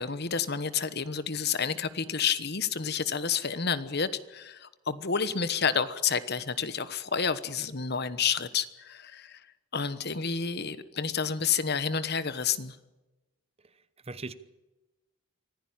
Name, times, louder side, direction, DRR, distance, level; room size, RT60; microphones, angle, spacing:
voice 1, 0.0-9.4 9.7-12.8, left 6 dB, 50° left, 1.1 m, -30 dB
voice 2, 13.6-14.3, right 3 dB, 30° right, 1.0 m, -41 dB
25.0 x 15.5 x 8.8 m
head